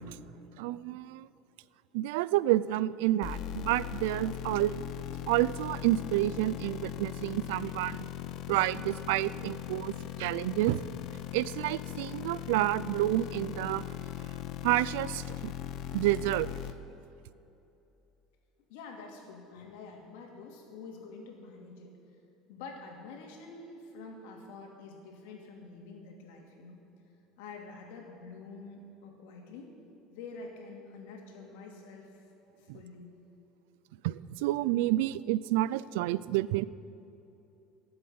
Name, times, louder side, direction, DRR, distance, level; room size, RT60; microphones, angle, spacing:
voice 1, 0.6-1.3 1.9-4.8 5.3-8.1 8.5-10.8 11.3-13.9 14.6-15.5 15.9-16.5 32.7-32.8 34.0-36.6, right 15 dB, 85° right, 18 dB, 0.4 m, -29 dB
sound 1, 3.2-16.7, left 12 dB, 45° left, 0.8 m, -39 dB
voice 2, 18.7-22.0 22.5-26.8 27.4-29.7 30.1-32.3 32.6-33.2, left 4 dB, 90° left, 1 dB, 2.7 m, -47 dB
14.5 x 7.9 x 9.5 m, 2.9 s
cardioid pair, 165°, 0 cm